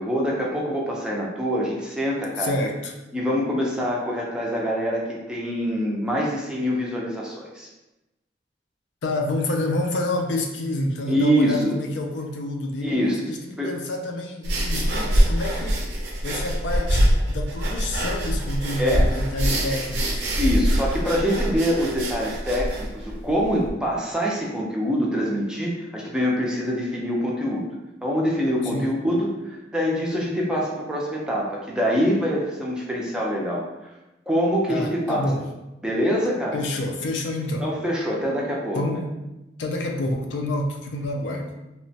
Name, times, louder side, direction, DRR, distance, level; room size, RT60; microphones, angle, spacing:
voice 1, 0.0-2.5 3.1-7.7 11.1-11.8 12.8-13.2 13.6-13.8 18.8-19.1 20.4-27.6 28.0-33.6 34.3-35.3 35.8-36.6 37.6-39.0, equal, 5° right, -3 dB, 0.4 m, -25 dB
voice 2, 2.4-2.9 9.0-15.9 16.2-20.3 28.6-28.9 34.7-35.4 36.5-37.7 38.7-39.1 39.6-41.5, left 2 dB, 80° left, 2 dB, 0.4 m, -28 dB
sound 1, 14.4-23.7, equal, 75° right, 0.5 m, -24 dB
2.9 x 2.1 x 2.7 m, 0.98 s
head